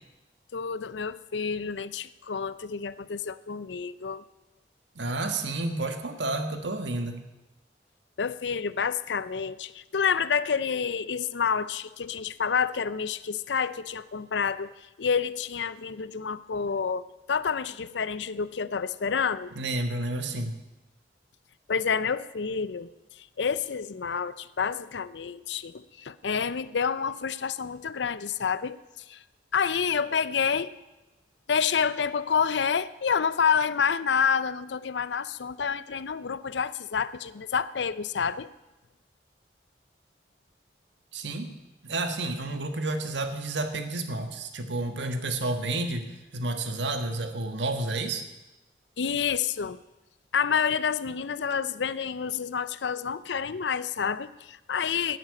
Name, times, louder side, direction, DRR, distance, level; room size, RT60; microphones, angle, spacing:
voice 1, 0.5-4.2 8.2-19.5 21.7-22.9 23.2-28.8 29.1-29.2 29.5-30.7 31.5-38.5 49.0-49.8 50.3-55.2, left 6 dB, 85° left, 16 dB, 0.6 m, -28 dB
voice 2, 4.9-7.2 19.5-20.6 41.1-41.5 41.8-48.2, right 2 dB, 85° right, 7 dB, 1.5 m, -30 dB
11.5 x 10.5 x 8.6 m, 1.0 s
head